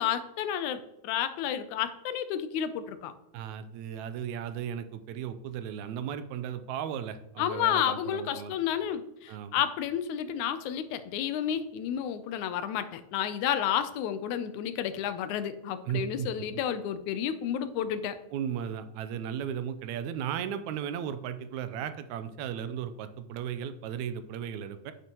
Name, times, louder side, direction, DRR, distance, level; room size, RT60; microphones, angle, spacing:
voice 1, 0.0-3.1 7.4-18.2, left 9 dB, 85° left, 11 dB, 2.1 m, -31 dB
voice 2, 3.3-8.5 9.3-9.6 15.9-16.3 18.3-24.9, right 9 dB, 85° right, 11 dB, 2.0 m, -35 dB
9.0 x 6.9 x 3.0 m, 0.87 s
omnidirectional pair, 3.3 m